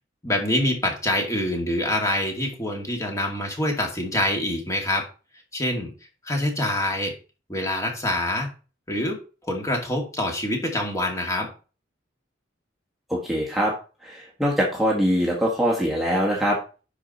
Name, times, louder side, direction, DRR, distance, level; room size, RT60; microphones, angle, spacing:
voice 1, 0.2-5.0 5.5-5.9 6.3-7.1 7.5-8.5 8.9-11.5, left 1 dB, 15° left, 1 dB, 2.2 m, -25 dB
voice 2, 13.1-13.7 14.0-16.6, equal, ahead, -4 dB, 1.7 m, -23 dB
11.0 x 4.9 x 4.2 m, 0.34 s
head